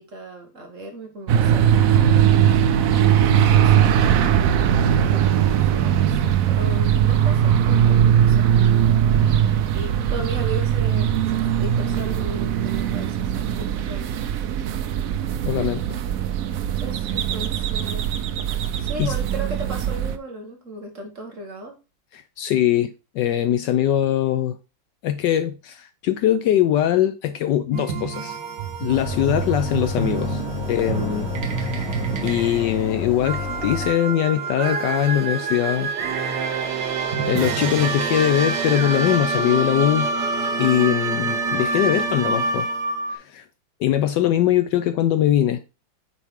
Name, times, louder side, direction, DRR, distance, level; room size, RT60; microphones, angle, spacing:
voice 1, 0.0-4.0 4.8-8.5 9.3-9.5 9.7-14.2 16.8-18.1 18.8-21.8, right 2 dB, 45° right, 1.5 m, -36 dB
sound 1, 1.3-20.2, right 9 dB, 85° right, 0.7 m, -20 dB
voice 2, 15.5-15.8 18.7-19.1 22.1-24.6 25.0-28.4 28.8-30.4 30.7-31.3 31.6-35.9 36.2-36.9 37.2-40.1 40.6-42.7 43.1-43.4 43.8-45.6, left 11 dB, 75° left, 1.1 m, -22 dB
sound 2, 27.7-43.2, right 4 dB, 65° right, 1.5 m, -26 dB
sound 3, 28.9-33.9, left 5 dB, 45° left, 0.9 m, -31 dB
8.3 x 4.3 x 3.6 m
omnidirectional pair, 2.2 m